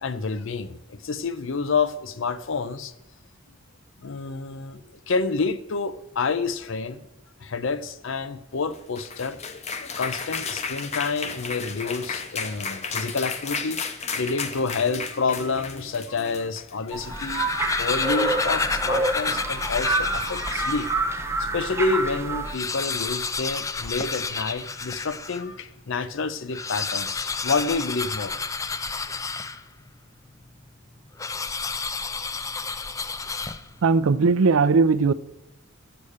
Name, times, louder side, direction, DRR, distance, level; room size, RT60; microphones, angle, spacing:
voice 1, 0.0-2.9 4.0-4.8 5.1-7.1 7.4-9.4 10.0-13.8 14.1-20.9 21.4-28.3, left 4 dB, 70° left, 0.6 m, -28 dB
sound 1, 8.7-17.0, left 5 dB, 35° left, 0.7 m, -33 dB
sound 2, 16.9-22.6, right 2 dB, 15° right, 0.9 m, -27 dB
sound 3, 17.0-21.1 21.6-21.7 21.9-22.0 22.4-25.5 26.4-29.9 31.2-33.9, left 4 dB, 15° left, 0.3 m, -30 dB
voice 2, 33.8-35.1, right 4 dB, 80° right, 0.5 m, -18 dB
8.5 x 6.9 x 6.4 m
head